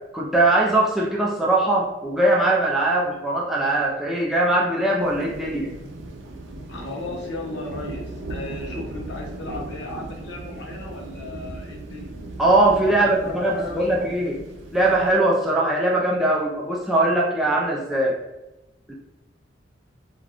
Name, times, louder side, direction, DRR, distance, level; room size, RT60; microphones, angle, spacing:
voice 1, 0.1-5.7 12.4-14.4 14.7-18.2 18.9-19.0, right 2 dB, ahead, -4 dB, 0.3 m, -21 dB
sound 1, 5.0-15.1, right 2 dB, 90° right, 0.4 m, -37 dB
voice 2, 6.7-12.2 12.8-14.0, left 2 dB, 70° left, -1 dB, 0.7 m, -35 dB
2.4 x 2.2 x 3.5 m, 1.0 s
head